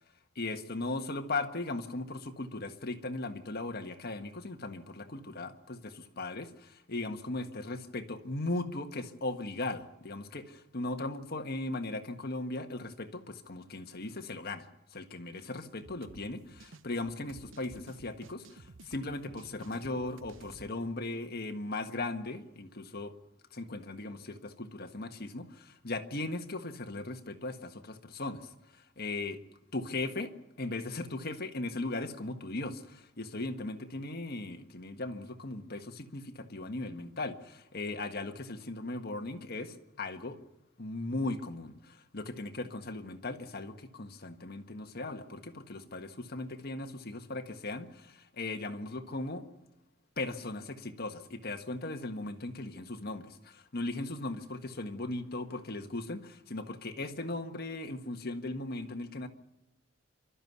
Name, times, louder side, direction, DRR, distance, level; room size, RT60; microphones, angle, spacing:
voice 1, 0.3-23.1 23.5-28.5 29.0-29.4 29.7-40.4 40.8-49.5 50.2-59.3, left 2 dB, 55° left, 1.6 m, -38 dB
sound 1, 15.8-20.7, right 3 dB, 75° right, 0.9 m, -54 dB
27.0 x 13.0 x 9.5 m
head